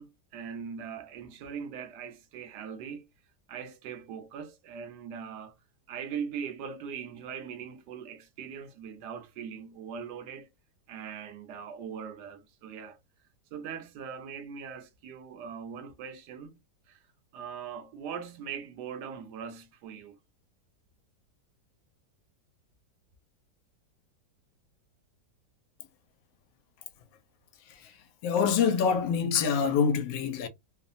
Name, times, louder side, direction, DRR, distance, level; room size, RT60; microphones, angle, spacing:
voice 1, 0.0-3.1 3.5-5.5 5.9-10.5 10.9-13.0 13.5-16.6 16.9-17.0 17.3-20.2, right 7 dB, 75° right, 1.1 m, -41 dB
voice 2, 28.2-30.5, left 6 dB, 85° left, 1.2 m, -25 dB
3.2 x 2.1 x 2.5 m
omnidirectional pair, 1.9 m